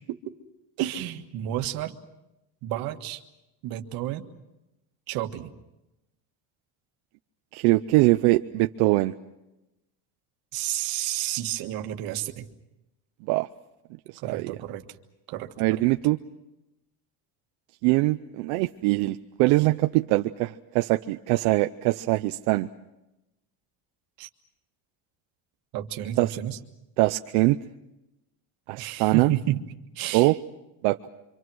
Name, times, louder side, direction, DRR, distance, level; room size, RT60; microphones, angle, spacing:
voice 1, 0.8-1.9 2.6-3.2 3.6-4.3 5.1-5.5 10.5-12.4 14.2-14.8 15.3-15.9 24.2-24.3 25.7-26.6 28.8-29.6 29.9-30.4, right 13 dB, 55° right, 6 dB, 1.7 m, -31 dB
voice 2, 7.5-9.1 13.3-13.5 14.2-14.5 15.6-16.2 17.8-22.7 26.2-26.4 27.0-27.6 28.7-29.3 30.1-30.3 30.8-31.1, right 20 dB, 75° right, 7 dB, 0.8 m, -22 dB
27.0 x 25.5 x 6.3 m, 0.95 s
cardioid pair, 175°, 43 cm